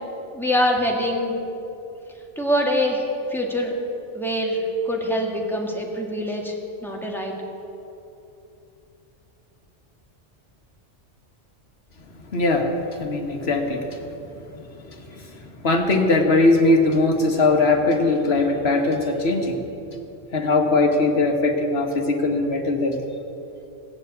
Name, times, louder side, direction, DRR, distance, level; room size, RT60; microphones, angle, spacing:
voice 1, 0.3-1.4 2.4-3.0 3.3-3.7 4.1-6.5 6.8-7.3, equal, ahead, -1 dB, 1.9 m, -24 dB
voice 2, 12.3-12.7 13.0-14.0 15.6-19.6 20.3-23.0, left 2 dB, 60° left, 3 dB, 1.6 m, -20 dB
18.0 x 7.3 x 8.0 m, 2.9 s
omnidirectional pair, 1.2 m